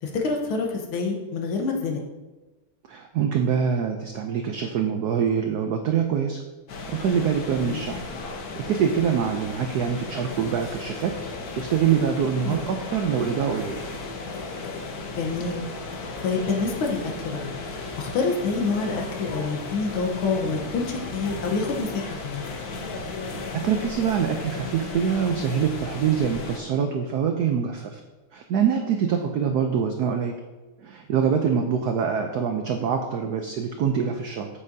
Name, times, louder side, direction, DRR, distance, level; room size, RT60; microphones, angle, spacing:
voice 1, 0.0-2.0 7.6-8.0 12.4-12.6 15.2-15.6 16.0-17.5 18.0-22.4 29.3-29.6, left 4 dB, 75° left, 2 dB, 1.8 m, -27 dB
voice 2, 2.9-6.4 6.9-8.0 8.6-11.1 11.5-13.9 23.5-28.0 28.3-30.4 30.8-34.5, right 7 dB, 90° right, 4 dB, 0.8 m, -24 dB
sound 1, 6.7-26.6, left 3 dB, 55° left, 1.2 m, -35 dB
8.3 x 7.5 x 2.7 m, 1.2 s
omnidirectional pair, 2.4 m